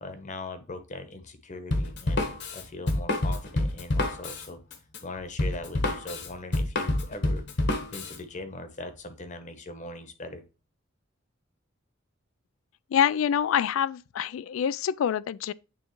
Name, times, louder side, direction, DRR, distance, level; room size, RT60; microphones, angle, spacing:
voice 1, 0.0-4.6 5.0-7.4 7.9-10.4, left 2 dB, 40° left, 1.0 m, -40 dB
Drum kit, 1.7-8.2, left 1 dB, 60° left, 1.2 m, -28 dB
voice 2, 12.9-15.5, left 8 dB, 75° left, 0.3 m, -26 dB
9.1 x 3.7 x 3.0 m
head